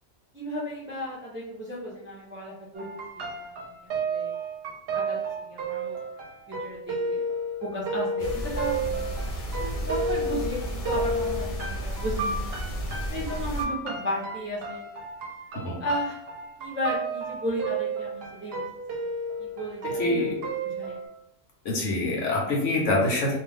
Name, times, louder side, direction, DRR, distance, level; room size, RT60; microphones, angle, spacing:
voice 1, 0.3-2.9 3.1-4.3 4.9-6.0 6.5-7.3 7.6-8.8 9.6-12.4 13.1-14.8 15.8-16.2 16.6-18.6 19.4-20.2 20.6-21.0, equal, 15° right, -6 dB, 0.4 m, -34 dB
sound 1, 2.8-21.1, right 2 dB, 60° right, 0.8 m, -32 dB
sound 2, 8.2-13.6, right 1 dB, 50° left, 0.7 m, -32 dB
voice 2, 20.0-20.4 21.6-23.4, left 2 dB, 75° left, -2 dB, 1.2 m, -25 dB
2.6 x 2.3 x 3.4 m, 0.81 s
omnidirectional pair, 1.3 m